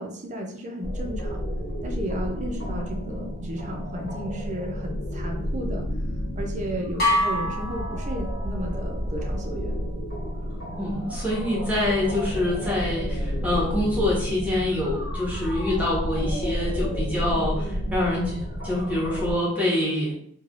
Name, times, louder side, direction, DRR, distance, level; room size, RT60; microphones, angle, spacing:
voice 1, 0.0-1.4 1.8-5.9 6.3-9.8, equal, 35° right, 1 dB, 0.5 m, -34 dB
sound 1, 0.8-19.4, equal, 80° left, 1.0 m, -31 dB
sound 2, 7.0-8.8, left 1 dB, 45° left, 1.0 m, -26 dB
voice 2, 10.8-20.1, left 1 dB, 5° right, -6 dB, 1.0 m, -26 dB
3.2 x 2.2 x 2.4 m, 0.64 s
head